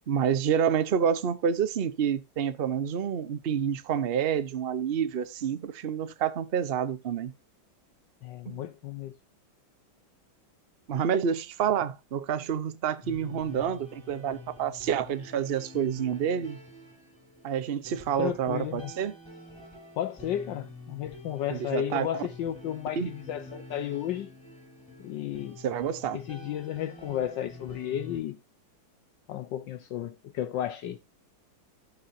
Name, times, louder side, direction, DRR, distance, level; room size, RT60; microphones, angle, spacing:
voice 1, 0.1-7.3 8.5-8.6 10.9-16.6 17.4-19.1 21.5-22.1 23.0-23.1 25.6-26.2, right 8 dB, 85° right, 0.5 m, -28 dB
voice 2, 8.2-9.1 18.2-18.9 20.0-24.3 25.0-25.6 26.1-28.4 29.3-31.0, left 11 dB, 70° left, 1.3 m, -33 dB
sound 1, 13.0-28.2, left 2 dB, 5° left, 4.5 m, -47 dB
17.5 x 5.9 x 2.6 m
omnidirectional pair, 2.2 m